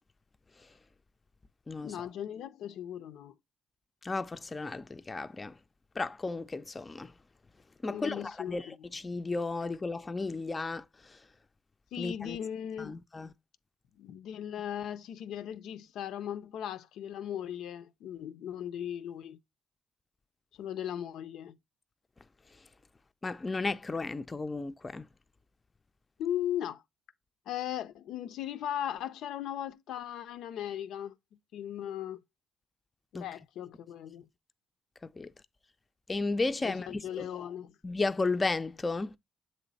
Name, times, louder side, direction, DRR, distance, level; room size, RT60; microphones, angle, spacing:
voice 1, 1.8-3.4 7.9-8.8 11.9-13.0 14.0-19.4 20.5-21.6 26.2-26.8 27.5-31.1 31.5-32.2 33.1-34.3 36.6-37.8, left 10 dB, 80° left, 0.4 m, -38 dB
voice 2, 4.0-5.6 6.0-7.1 7.8-11.2 12.0-12.4 12.8-13.3 23.2-25.1 33.1-33.3 35.0-35.3 36.1-37.3 37.8-39.2, left 3 dB, 25° left, 0.4 m, -34 dB
7.6 x 3.1 x 4.0 m
cardioid pair, 90°, 0 cm